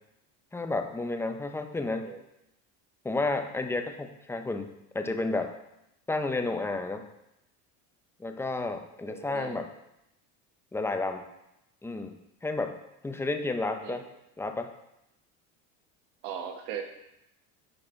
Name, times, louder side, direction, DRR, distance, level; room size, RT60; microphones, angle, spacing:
voice 1, 0.5-2.1 3.0-4.7 4.9-5.5 6.1-7.0 8.2-9.7 10.7-11.2 11.8-12.2 12.4-12.7 13.0-14.0 14.4-14.7, left 2 dB, 5° left, 6 dB, 0.6 m, -31 dB
voice 2, 9.1-9.6 13.8-14.1 16.2-16.8, right 8 dB, 85° right, 5 dB, 1.1 m, -38 dB
11.0 x 4.3 x 3.2 m, 0.86 s
supercardioid pair, 105°, 37 cm